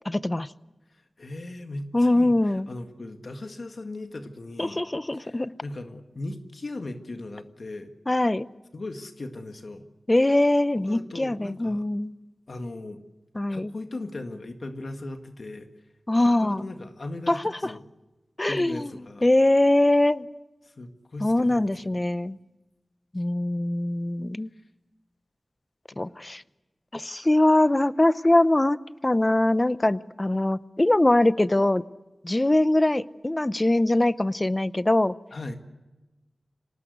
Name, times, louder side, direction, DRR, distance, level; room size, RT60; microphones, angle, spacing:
voice 1, 0.1-0.5 1.9-2.7 4.6-5.5 8.1-8.5 10.1-12.1 13.4-13.7 16.1-16.6 17.3-17.7 18.4-18.9 19.2-20.3 21.2-22.4 23.1-24.5 26.0-26.4 26.9-28.8 29.0-31.8 32.2-35.1, left 1 dB, 25° left, 15 dB, 0.7 m, -22 dB
voice 2, 0.9-4.8 5.1-7.9 8.7-9.9 10.9-11.8 12.5-13.0 13.5-15.7 16.2-17.8 18.5-19.2 20.6-22.0 25.9-26.0 35.3-35.6, left 2 dB, 65° left, 5 dB, 1.9 m, -38 dB
26.5 x 18.5 x 8.1 m, 1.1 s
wide cardioid pair, 85°, 0 cm